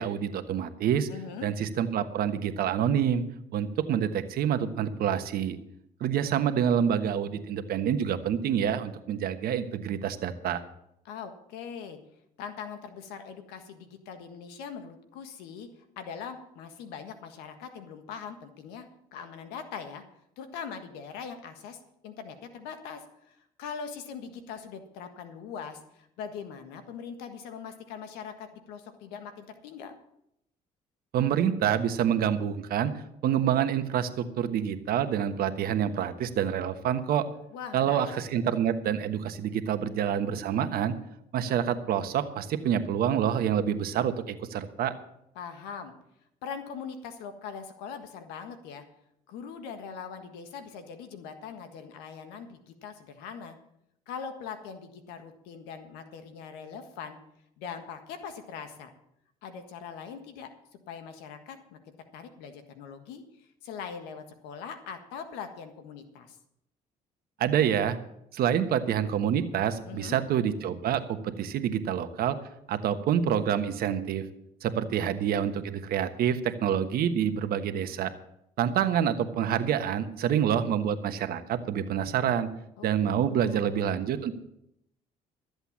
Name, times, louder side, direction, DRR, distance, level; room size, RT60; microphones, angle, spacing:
voice 1, 0.0-1.1 1.4-3.2 3.5-5.6 6.0-10.6 31.1-37.3 37.7-40.9 41.3-44.9 67.4-68.0 68.3-72.4 72.7-74.2 74.6-78.1 78.6-82.5 82.8-84.3, right 9 dB, 70° right, 9 dB, 1.2 m, -27 dB
voice 2, 1.1-1.5 11.0-12.0 12.4-15.7 16.0-20.0 20.4-29.9 37.5-38.1 45.3-45.9 46.4-48.8 49.3-53.6 54.1-57.2 57.6-58.9 59.4-60.5 60.9-66.4 69.8-70.2 82.8-82.9 83.3-83.8, left 6 dB, 85° left, 8 dB, 1.6 m, -41 dB
13.5 x 8.0 x 7.3 m, 0.78 s
supercardioid pair, 70°, 16 cm